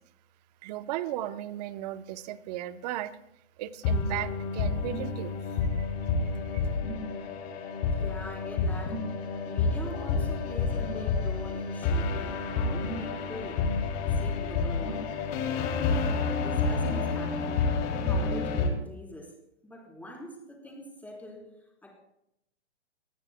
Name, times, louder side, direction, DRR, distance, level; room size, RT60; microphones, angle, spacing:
voice 1, 0.6-3.1 3.6-5.3 5.7-5.9 6.5-6.6, right 13 dB, 35° right, 13 dB, 0.9 m, -36 dB
sound 1, 3.8-18.7, left 4 dB, 40° left, 2.9 m, -29 dB
voice 2, 7.9-9.1 9.5-13.7 14.1-15.2 15.8-17.8 18.1-19.4 19.6-21.9, left 1 dB, 5° left, -1 dB, 3.8 m, -44 dB
25.5 x 20.0 x 2.2 m, 0.80 s
hypercardioid pair, 135°, 34 cm